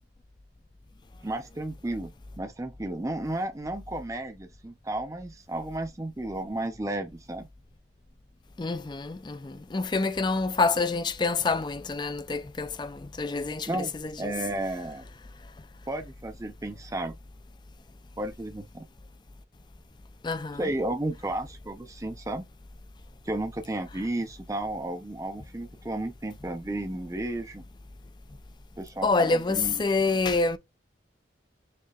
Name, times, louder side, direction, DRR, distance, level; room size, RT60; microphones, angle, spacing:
voice 1, 1.2-2.1 2.4-7.5 13.6-15.1 15.9-17.1 18.2-18.8 20.6-22.5 23.2-27.6 28.8-29.8, right 1 dB, 15° right, 0.6 m, -33 dB
voice 2, 8.6-14.3 20.2-20.7 29.0-30.6, left 3 dB, 25° left, 0.4 m, -27 dB
6.7 x 2.7 x 2.4 m
head